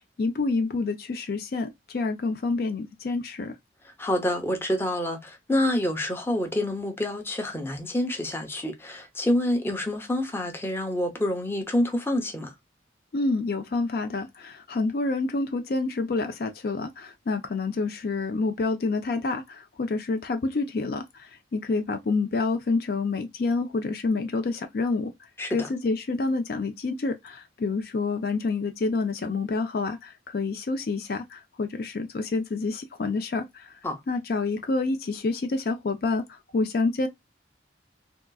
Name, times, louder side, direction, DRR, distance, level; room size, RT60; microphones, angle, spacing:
voice 1, 0.2-3.5 13.1-25.1 25.5-33.7 34.1-37.1, left 3 dB, 55° left, 0.4 m, -28 dB
voice 2, 3.8-12.5 25.4-25.7 33.8-34.0, left 1 dB, 10° left, 0.6 m, -27 dB
3.7 x 2.3 x 2.2 m
head